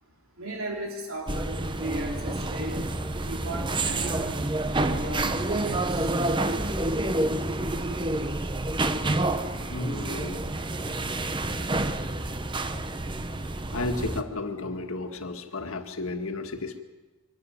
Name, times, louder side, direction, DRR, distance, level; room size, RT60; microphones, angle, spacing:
voice 1, 0.4-2.8 3.3-4.5 4.9-6.1, right 1 dB, 75° right, 0 dB, 3.3 m, -36 dB
sound 1, 1.3-14.2, right 2 dB, 20° right, 0.8 m, -28 dB
voice 2, 9.5-10.4 11.4-11.5 13.7-16.8, left 2 dB, 70° left, 6 dB, 1.7 m, -33 dB
23.5 x 12.5 x 9.3 m, 1.2 s
head